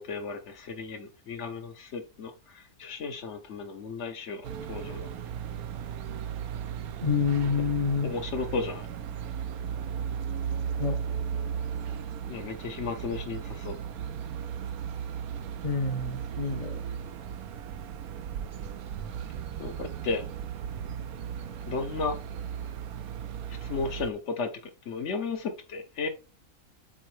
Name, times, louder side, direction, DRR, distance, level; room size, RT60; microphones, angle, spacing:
voice 1, 0.0-4.4 4.7-5.1 8.0-8.8 12.3-13.8 19.6-20.2 21.7-22.2 23.5-24.5 24.9-26.1, left 4 dB, 60° left, 1.1 m, -34 dB
sound 1, 4.4-24.1, right 8 dB, 85° right, 1.1 m, -36 dB
voice 2, 7.0-8.1 10.8-11.0 15.6-16.8, left 5 dB, 35° left, 0.6 m, -27 dB
7.9 x 3.8 x 3.2 m
omnidirectional pair, 1.5 m